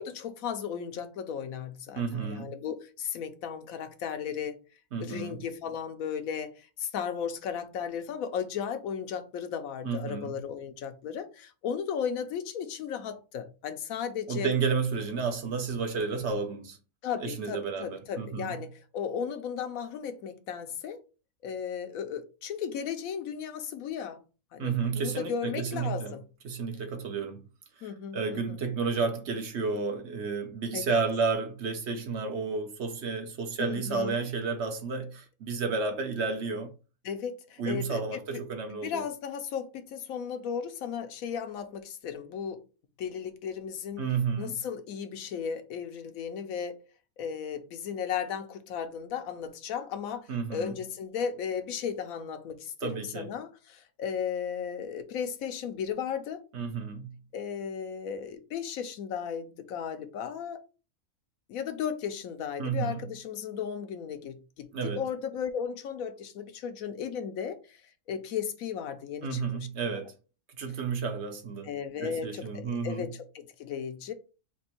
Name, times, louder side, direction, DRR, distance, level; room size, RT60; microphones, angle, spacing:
voice 1, 0.0-4.6 5.0-14.5 17.0-21.0 21.4-24.2 24.5-26.2 27.8-28.6 30.7-31.0 33.6-34.3 37.0-38.2 38.7-42.6 43.0-44.1 44.4-46.8 47.2-56.4 57.3-60.6 61.5-69.7 69.9-70.1 71.6-74.1, left 7 dB, 85° left, 1.1 m, -35 dB
voice 2, 2.0-2.5 4.9-5.4 9.8-10.3 14.3-16.8 17.2-18.6 24.6-26.1 26.4-27.4 27.8-36.7 37.6-39.0 44.0-44.6 50.3-50.7 52.8-53.3 56.5-57.2 62.6-63.0 64.7-65.0 69.2-70.2 70.6-71.7 72.0-73.1, right 5 dB, 60° right, 0.9 m, -31 dB
3.5 x 2.9 x 4.3 m
omnidirectional pair, 1.4 m